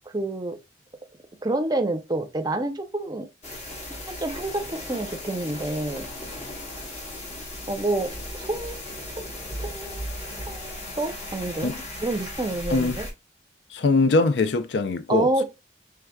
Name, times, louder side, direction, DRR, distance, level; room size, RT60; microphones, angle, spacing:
voice 1, 0.1-0.6 1.4-3.3 4.1-6.0 7.7-8.8 9.2-9.3 9.6-10.1 10.5-11.7 12.0-13.1 15.1-15.4, right 2 dB, 20° right, 0.6 m, -28 dB
sound 1, 3.4-13.1, left 1 dB, 40° left, 1.3 m, -36 dB
voice 2, 12.7-13.0 13.7-15.4, left 3 dB, 65° left, 0.5 m, -22 dB
4.8 x 3.3 x 2.3 m
head